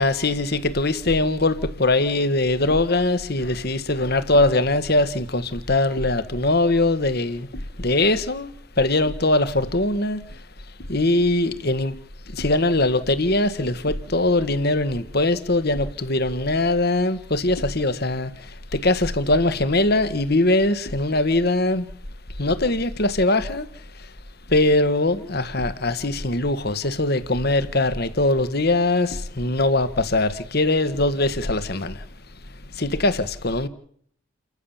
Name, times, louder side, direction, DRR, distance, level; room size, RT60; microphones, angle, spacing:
voice 1, 0.0-10.4 10.9-12.0 12.3-21.9 22.4-23.7 23.9-24.1 24.5-32.1 32.7-33.7, left 2 dB, 45° left, 1.5 m, -21 dB
30.0 x 14.5 x 7.3 m
head